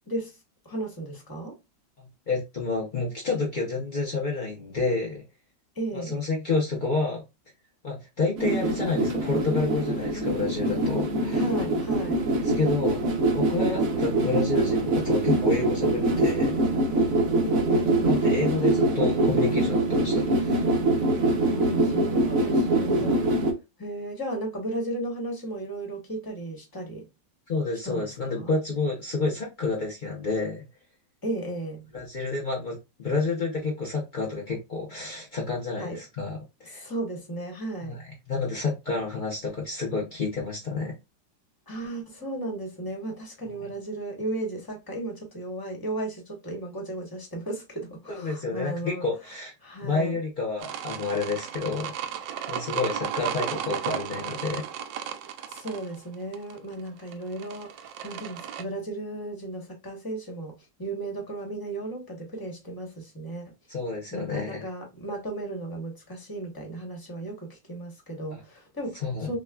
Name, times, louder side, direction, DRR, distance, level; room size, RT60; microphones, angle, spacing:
voice 1, 0.6-1.6 5.7-6.2 11.4-12.2 17.4-18.8 21.4-23.2 23.8-27.1 27.8-28.5 31.2-31.8 35.8-36.0 36.7-38.0 41.7-49.1 49.6-50.2 55.5-60.5 60.8-63.5 64.1-69.4, right 2 dB, 15° left, 0.9 m, -35 dB
voice 2, 2.0-5.2 5.9-7.2 7.8-11.5 12.4-13.0 13.3-16.6 18.0-20.6 22.9-23.3 27.5-30.6 31.9-36.8 37.8-41.0 43.5-43.7 48.1-49.5 49.8-51.9 52.5-54.6 63.7-64.7 68.3-68.4 69.0-69.4, left 3 dB, 55° left, 0.5 m, -29 dB
sound 1, 8.4-23.5, right 2 dB, 55° right, 1.0 m, -24 dB
sound 2, 50.6-58.6, right 9 dB, 75° right, 1.2 m, -34 dB
6.2 x 2.3 x 2.3 m
omnidirectional pair, 2.1 m